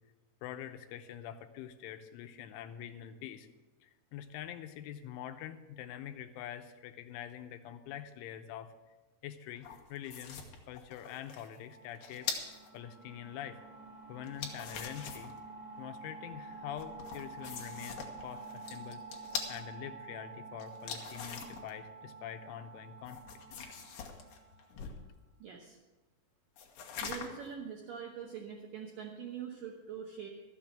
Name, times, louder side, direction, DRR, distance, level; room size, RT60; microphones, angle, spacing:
voice 1, 0.4-3.5 3.8-8.7 9.2-10.4 10.7-13.6 14.1-15.3 15.8-19.0 19.5-23.4, left 10 dB, 85° left, 8 dB, 3.2 m, -45 dB
sound 1, 9.6-12.7 14.2-15.4 16.8-19.6 20.6-21.7 23.0-25.0 26.6-27.5, left 6 dB, 65° left, 2.4 m, -43 dB
sound 2, 11.5-24.9, right 4 dB, 55° right, 1.7 m, -49 dB
voice 2, 25.4-25.8 27.0-30.3, right 7 dB, 80° right, 1 dB, 1.9 m, -43 dB
13.0 x 7.6 x 7.3 m, 1.2 s
omnidirectional pair, 5.5 m